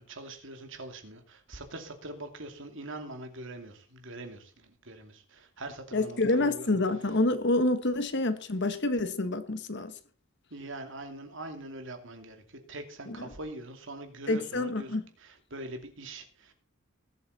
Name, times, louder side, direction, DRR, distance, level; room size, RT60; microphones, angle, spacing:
voice 1, 0.0-6.7 10.5-16.5, right 2 dB, 65° right, 2.7 m, -43 dB
voice 2, 5.9-9.9 13.1-13.2 14.3-15.0, left 2 dB, 60° left, 1.5 m, -27 dB
20.0 x 8.1 x 4.2 m
head